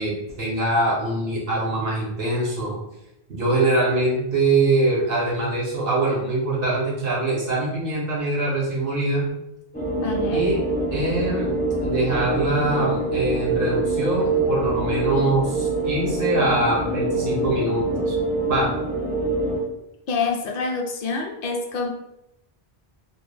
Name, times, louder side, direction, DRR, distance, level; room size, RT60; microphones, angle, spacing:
voice 1, 0.0-2.8 3.3-9.2 10.3-10.6 10.9-11.5 11.8-18.2 18.5-18.7, right 2 dB, 60° right, -5 dB, 0.9 m, -23 dB
sound 1, 9.7-19.6, right 2 dB, 15° left, 0.3 m, -25 dB
voice 2, 10.0-10.4 20.1-21.9, left 4 dB, 65° left, 1 dB, 0.7 m, -26 dB
2.3 x 2.1 x 3.1 m, 0.86 s
omnidirectional pair, 1.1 m